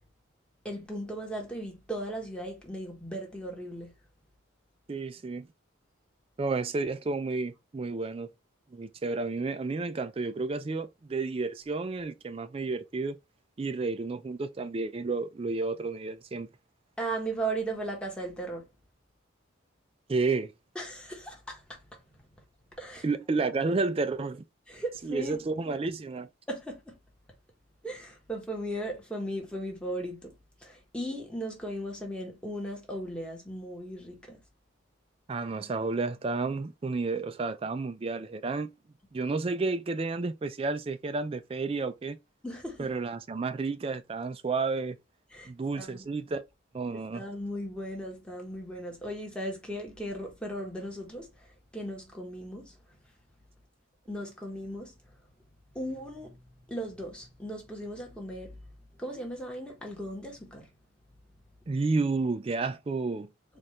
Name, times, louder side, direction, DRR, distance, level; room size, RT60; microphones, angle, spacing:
voice 1, 0.6-3.9 17.0-18.7 20.7-22.2 22.8-23.0 24.7-25.4 26.5-27.0 27.8-30.3 30.6-34.4 42.4-42.9 45.3-46.0 46.9-52.7 54.1-54.9 55.7-56.4 56.7-58.7 59.0-60.7, right 1 dB, 5° left, 1.2 m, -37 dB
voice 2, 4.9-5.5 6.4-8.3 8.7-13.2 13.6-16.5 20.1-20.5 23.0-24.4 25.0-26.3 35.3-38.7 39.1-42.2 42.8-45.0 45.5-46.4 46.7-47.2 61.7-63.3, right 3 dB, 30° right, 0.3 m, -31 dB
4.2 x 2.5 x 3.1 m
head